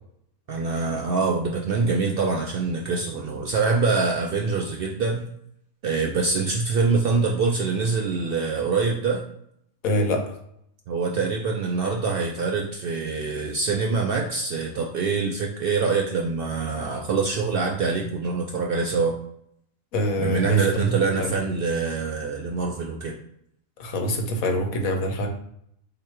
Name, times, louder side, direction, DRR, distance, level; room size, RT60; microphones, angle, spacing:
voice 1, 0.5-5.3 5.8-9.2 10.9-19.1 20.2-23.2, right 4 dB, 65° right, 0 dB, 0.5 m, -25 dB
voice 2, 9.8-10.2 19.9-21.3 23.8-25.3, equal, 85° left, 4 dB, 1.2 m, -24 dB
3.6 x 3.0 x 4.4 m, 0.73 s
omnidirectional pair, 1.4 m